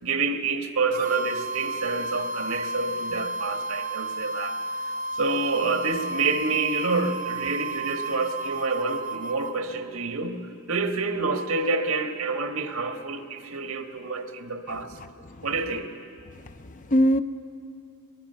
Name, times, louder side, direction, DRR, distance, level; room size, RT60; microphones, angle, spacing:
voice 1, 0.0-4.9 5.2-14.9 15.4-15.9, right 3 dB, 80° right, 6 dB, 1.5 m, -28 dB
sound 1, 0.9-9.5, right 2 dB, 35° right, 0.6 m, -32 dB
voice 2, 15.0-15.5 16.6-17.2, equal, 35° left, 10 dB, 0.6 m, -23 dB
23.5 x 20.0 x 5.7 m, 2.5 s
head